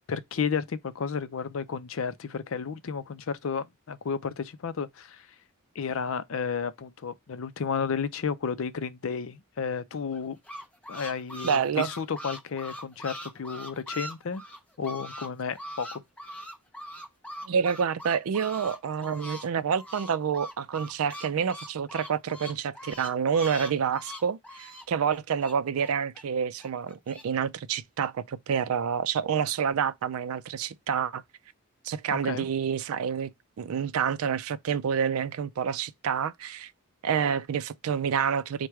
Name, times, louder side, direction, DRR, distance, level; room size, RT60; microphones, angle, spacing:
voice 1, 0.1-5.3 5.8-10.4 10.9-14.4 14.8-16.0 32.1-32.5, left 6 dB, 65° left, 0.4 m, -32 dB
sound 1, 10.1-15.3 15.5-19.5 19.7-26.2 26.6-27.2, equal, 5° left, 0.6 m, -41 dB
voice 2, 11.4-11.9 17.4-31.2 31.8-33.3 33.6-36.7 37.0-38.7, right 7 dB, 75° right, 0.4 m, -28 dB
4.5 x 2.2 x 4.7 m
head